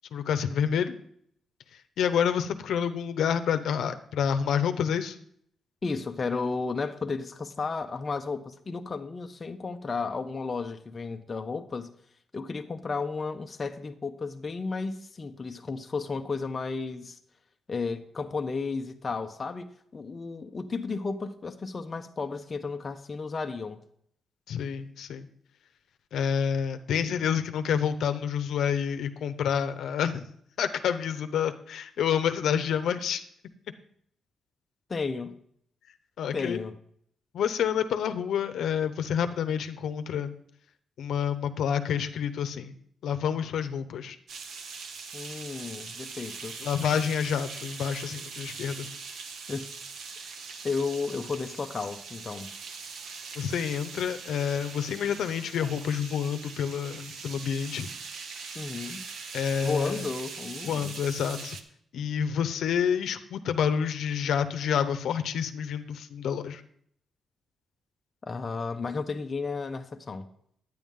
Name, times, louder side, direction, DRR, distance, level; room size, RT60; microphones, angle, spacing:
voice 1, 0.1-1.0 2.0-5.2 24.5-25.3 26.1-30.3 30.6-33.2 36.2-36.6 37.3-40.3 41.0-42.7 43.0-44.2 46.6-48.9 53.3-57.9 59.3-60.1 60.7-61.6 61.9-66.6, left 8 dB, 75° left, 9 dB, 0.7 m, -28 dB
voice 2, 5.8-11.9 12.3-17.2 17.7-23.8 34.9-35.4 36.3-36.8 45.1-46.6 49.5-49.7 50.2-50.3 50.6-52.5 58.5-59.0 59.6-60.9 68.3-70.3, left 4 dB, 25° left, 5 dB, 0.6 m, -33 dB
sound 1, 44.3-61.6, right 5 dB, 65° right, 0.9 m, -41 dB
10.5 x 9.3 x 3.7 m, 0.66 s
wide cardioid pair, 165°, 0 cm